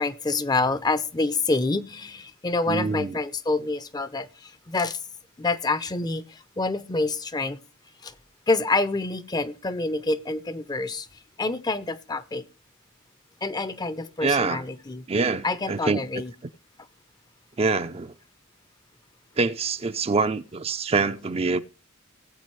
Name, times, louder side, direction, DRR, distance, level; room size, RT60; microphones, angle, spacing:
voice 1, 0.0-5.0 5.4-7.6 8.0-8.1 8.5-11.1 11.4-12.4 13.4-15.1 15.4-16.3, left 3 dB, 20° left, 0.6 m, -27 dB
voice 2, 2.7-3.2 14.2-14.6 15.1-16.0 17.6-18.1 19.4-21.6, right 4 dB, 30° right, 0.5 m, -25 dB
19.5 x 8.1 x 3.1 m
head